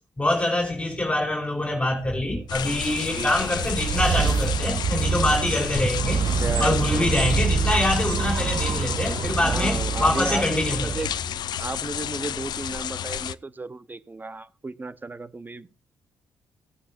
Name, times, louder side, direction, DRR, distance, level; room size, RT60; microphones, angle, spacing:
voice 1, 0.2-6.2 6.6-11.0, left 1 dB, 15° left, 3.4 m, -25 dB
sound 1, 2.4-11.7, right 6 dB, 60° right, 0.7 m, -27 dB
sound 2, 2.5-13.3, left 9 dB, 70° left, 0.5 m, -31 dB
sound 3, 3.6-12.7, right 5 dB, 80° right, 2.9 m, -45 dB
voice 2, 6.4-7.5 9.4-11.1 11.6-15.7, right 3 dB, 25° right, 1.0 m, -34 dB
17.5 x 8.7 x 2.7 m
supercardioid pair, 65°, 8 cm